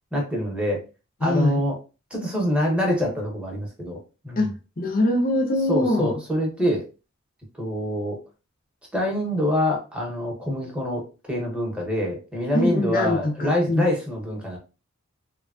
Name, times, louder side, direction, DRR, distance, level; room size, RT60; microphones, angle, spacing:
voice 1, 0.1-0.8 1.2-1.8 2.1-4.0 4.2-4.4 5.7-6.8 7.6-8.2 8.9-11.0 11.3-14.6, equal, 5° right, 0.9 m, -25 dB
voice 2, 1.2-1.6 4.4-4.5 4.8-6.2 12.5-13.9, left 1 dB, 45° left, 0.6 m, -23 dB
3.3 x 2.2 x 2.4 m
head